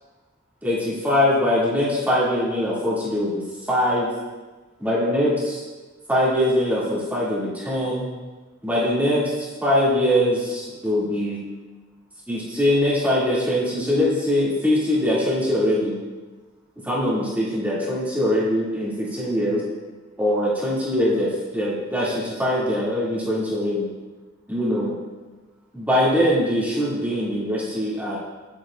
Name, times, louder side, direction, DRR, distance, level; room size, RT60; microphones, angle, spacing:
voice 1, 0.6-3.4 3.7-4.1 4.8-5.6 6.1-8.1 8.6-11.4 12.3-16.0 16.8-19.6 20.2-23.9 24.5-24.9 25.7-28.2, left 1 dB, 10° right, -9 dB, 2.5 m, -22 dB
9.9 x 9.1 x 2.5 m, 1.3 s
head